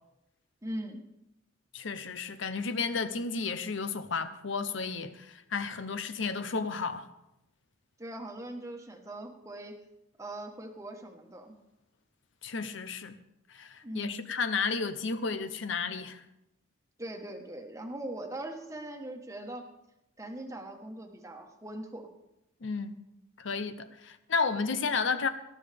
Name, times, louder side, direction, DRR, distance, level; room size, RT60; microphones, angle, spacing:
voice 1, 0.6-1.0 8.0-9.8 10.2-11.5 13.8-14.2 17.0-19.7 20.2-22.1, right 1 dB, 15° right, 1.3 m, -41 dB
voice 2, 1.7-7.1 12.4-13.2 13.5-16.2 22.6-23.0 23.4-25.3, left 4 dB, 65° left, 0.8 m, -32 dB
19.0 x 13.0 x 3.5 m
head